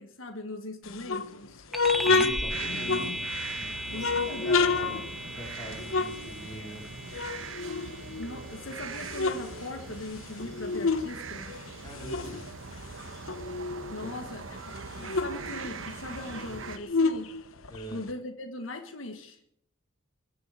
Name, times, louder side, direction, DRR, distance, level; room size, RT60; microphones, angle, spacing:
voice 1, 0.0-1.6 3.9-5.0 8.2-11.5 13.9-17.3 17.9-19.4, left 2 dB, 70° left, 5 dB, 1.7 m, -40 dB
sound 1, 0.8-3.5 4.0-6.9 7.1-8.5 8.9-11.1 11.4-14.0 14.3-14.4 14.7-18.1, left 4 dB, 90° left, 1.1 m, -30 dB
sound 2, 1.7-11.6, equal, ahead, 1.3 m, -38 dB
voice 2, 1.9-3.3 3.6-5.0 5.3-6.8 11.8-12.4 14.0-14.1 17.7-18.0, equal, 20° left, -1 dB, 4.3 m, -42 dB
sound 3, 2.5-16.8, right 4 dB, 70° right, 1.1 m, -42 dB
22.0 x 7.5 x 7.7 m, 0.72 s
head